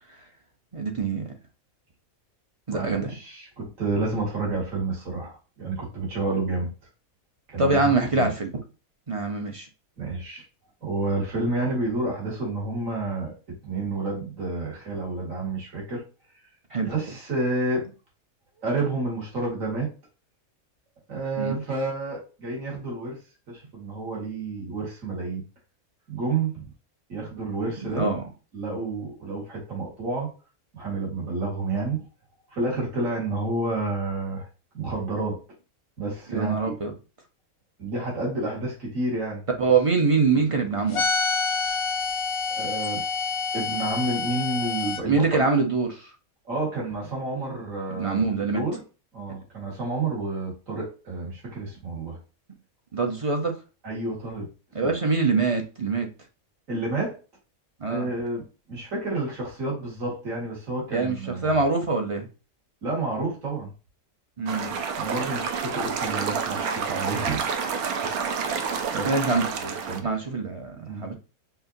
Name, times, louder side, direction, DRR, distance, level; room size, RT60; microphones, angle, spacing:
voice 1, 0.7-1.2 2.7-3.1 7.6-8.5 9.1-9.7 16.7-16.9 21.4-21.6 27.9-28.2 36.3-36.9 39.6-41.1 45.1-46.1 47.9-48.6 52.9-53.5 54.7-56.1 57.8-58.1 60.9-62.3 64.4-64.7 69.0-69.5 70.0-71.1, right 4 dB, 35° right, 0.5 m, -24 dB
voice 2, 2.7-6.7 7.5-8.3 10.0-10.4 10.8-16.0 16.8-17.9 18.6-19.9 21.1-23.2 23.5-25.4 26.1-26.6 27.1-28.1 28.5-30.3 30.7-32.0 32.5-34.5 34.7-35.4 36.0-36.7 37.8-39.4 42.5-43.0 43.5-45.5 46.4-48.3 48.5-48.8 49.1-52.2 53.8-54.5 54.8-54.9 56.7-57.2 57.9-61.6 62.8-63.7 64.9-67.4 68.0-68.5 68.9-70.2 70.7-71.1, right 2 dB, 65° right, 2.4 m, -30 dB
sound 1, 40.9-45.0, left 4 dB, 55° left, 0.7 m, -27 dB
sound 2, 64.5-70.0, right 6 dB, 85° right, 1.2 m, -29 dB
5.8 x 2.8 x 2.6 m
omnidirectional pair, 1.5 m